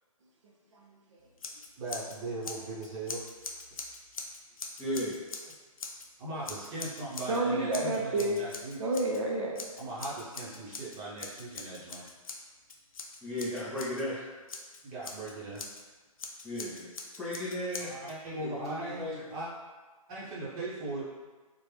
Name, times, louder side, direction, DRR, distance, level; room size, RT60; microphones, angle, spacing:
voice 1, 0.4-1.2 7.3-8.4 8.8-9.7, right 2 dB, 55° right, -1 dB, 0.6 m, -31 dB
Scissors, 1.4-2.2 2.4-6.1 6.4-7.4 7.7-9.2 9.6-14.0 14.5-15.8 16.2-18.2, left 4 dB, 70° left, 0.5 m, -43 dB
voice 2, 1.8-3.2 6.2-8.8 9.8-12.0 14.8-15.6 17.8-19.5 20.1-21.0, right 2 dB, 20° right, -8 dB, 0.9 m, -39 dB
voice 3, 4.8-5.2 13.2-14.2 16.4-16.9 17.2-17.9 18.4-19.2, left 1 dB, 5° left, -13 dB, 0.4 m, -35 dB
3.2 x 2.1 x 3.2 m, 1.3 s
hypercardioid pair, 145°, 18 cm